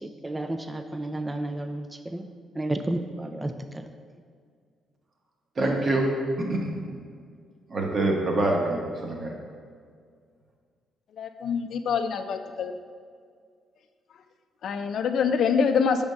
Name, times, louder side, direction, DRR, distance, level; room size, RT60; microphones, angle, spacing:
voice 1, 0.0-2.3 2.6-3.9, right 1 dB, 15° right, 7 dB, 0.3 m, -32 dB
voice 2, 5.6-6.1 6.4-6.7 7.7-9.3, right 2 dB, 40° right, 1 dB, 1.0 m, -25 dB
voice 3, 11.2-12.7 14.6-16.0, left 6 dB, 65° left, 8 dB, 0.4 m, -25 dB
5.0 x 3.5 x 5.4 m, 2.1 s
cardioid pair, 90°, 0 cm